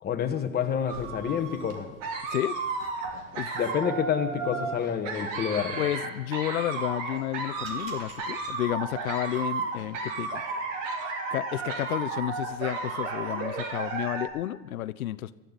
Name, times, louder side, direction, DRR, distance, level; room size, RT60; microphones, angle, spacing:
voice 1, 0.0-1.9 3.5-5.8, left 8 dB, 25° left, 5 dB, 1.4 m, -28 dB
sound 1, 0.9-14.3, right 4 dB, 60° right, 3.0 m, -33 dB
voice 2, 5.8-10.4 11.3-15.4, left 13 dB, 90° left, 15 dB, 0.6 m, -31 dB
19.0 x 13.5 x 4.1 m, 1.2 s
hypercardioid pair, 120°, 41 cm